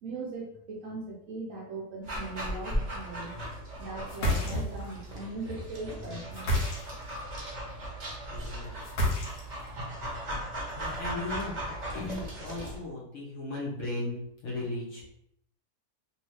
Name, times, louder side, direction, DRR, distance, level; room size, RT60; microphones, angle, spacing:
voice 1, 0.0-3.3 3.8-6.6, right 2 dB, 65° right, -2 dB, 0.8 m, -39 dB
Dog, 2.1-12.8, equal, 40° right, 0.6 m, -37 dB
sound 1, 4.1-4.9 6.3-7.2 8.8-9.7, left 1 dB, 85° left, 1.3 m, -29 dB
voice 2, 8.3-8.7 10.7-15.2, left 2 dB, 60° left, -4 dB, 0.9 m, -37 dB
2.7 x 2.7 x 3.1 m, 0.76 s
omnidirectional pair, 1.7 m